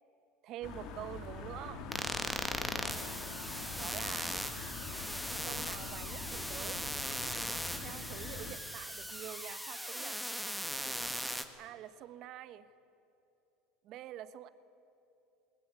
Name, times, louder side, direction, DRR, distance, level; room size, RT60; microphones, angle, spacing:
voice 1, 0.4-1.9 3.8-4.4 5.4-6.8 7.8-10.2 11.6-12.7 13.8-14.5, right 12 dB, 55° right, 13 dB, 1.2 m, -46 dB
sound 1, 0.6-8.5, left 5 dB, 60° left, 2.7 m, -44 dB
sound 2, 1.9-11.4, equal, ahead, 1.7 m, -39 dB
20.0 x 20.0 x 9.4 m, 2.9 s
supercardioid pair, 105°, 0 cm